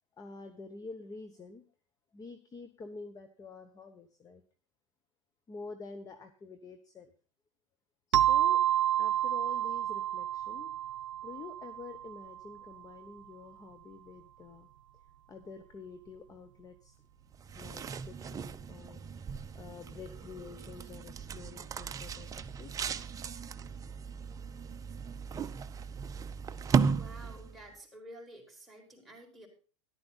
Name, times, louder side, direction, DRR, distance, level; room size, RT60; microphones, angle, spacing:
voice 1, 0.2-1.6 2.1-4.4 5.5-7.1 8.1-8.6 9.0-10.7 11.2-14.7 15.3-16.9 17.5-19.2 19.5-22.7, left 4 dB, 20° left, 9 dB, 1.1 m, -48 dB
sound 1, 8.1-12.5, right 12 dB, 70° right, 0.6 m, -29 dB
sound 2, 17.3-27.7, right 5 dB, 20° right, 0.6 m, -36 dB
voice 2, 26.6-29.5, equal, ahead, 2 dB, 4.3 m, -50 dB
13.5 x 11.5 x 4.1 m, 0.37 s
hypercardioid pair, 95°, 16 cm